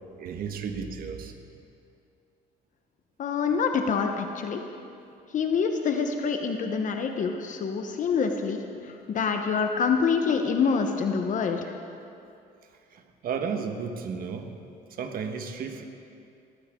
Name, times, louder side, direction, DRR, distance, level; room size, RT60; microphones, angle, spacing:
voice 1, 0.2-1.3 12.9-14.5 14.9-15.8, right 6 dB, 60° right, 5 dB, 1.5 m, -33 dB
voice 2, 3.2-4.6 5.3-11.6, left 5 dB, 50° left, 5 dB, 1.0 m, -26 dB
20.5 x 15.0 x 3.8 m, 2.6 s
cardioid pair, 110°, 17 cm